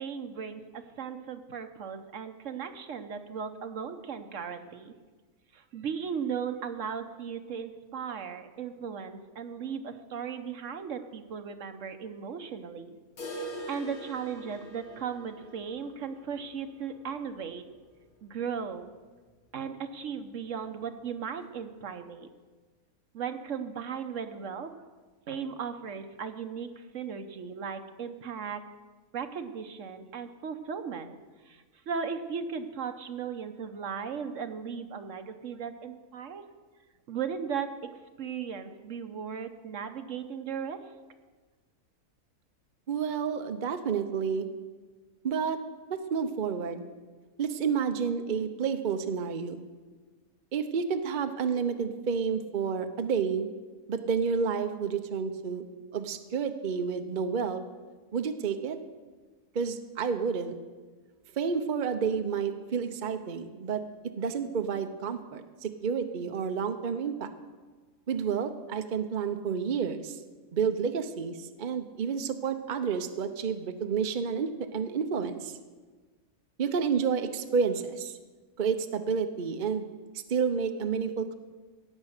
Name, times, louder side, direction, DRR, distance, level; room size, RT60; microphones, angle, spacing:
voice 1, 0.0-4.9 5.5-13.0 13.7-17.6 18.2-18.9 19.5-22.3 23.1-24.8 25.3-28.6 29.1-31.2 31.4-36.4 37.1-37.9 38.2-40.8, right 6 dB, 65° right, 8 dB, 1.1 m, -37 dB
sound 1, 13.2-19.0 19.3-19.4 19.7-19.8 20.3-20.4 21.3-21.4, right 1 dB, 85° left, 2.3 m, -44 dB
voice 2, 42.9-44.5 45.2-45.6 45.9-46.8 47.4-49.7 50.5-53.5 53.9-55.6 55.9-57.6 58.1-58.8 59.5-60.5 61.4-63.8 64.2-67.3 68.1-70.2 70.5-75.6 76.6-78.1 78.6-79.9 80.3-81.3, right 6 dB, 45° right, 7 dB, 0.7 m, -30 dB
17.5 x 7.4 x 6.5 m, 1.3 s
omnidirectional pair, 1.5 m